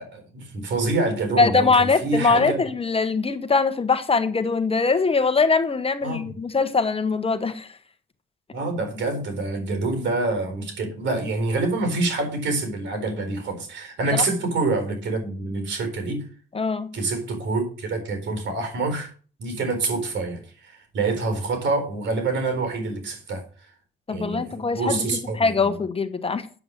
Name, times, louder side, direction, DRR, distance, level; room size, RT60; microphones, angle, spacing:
voice 1, 0.0-2.6 6.0-6.4 8.5-16.2 16.9-19.1 19.4-23.4 24.1-25.8, right 3 dB, 65° right, 4.3 m, -26 dB
voice 2, 1.4-7.7 14.1-14.2 16.5-16.9 24.1-25.1 25.4-26.5, left 4 dB, 30° left, 1.2 m, -22 dB
9.3 x 7.9 x 7.4 m
cardioid pair, 90°, 20 cm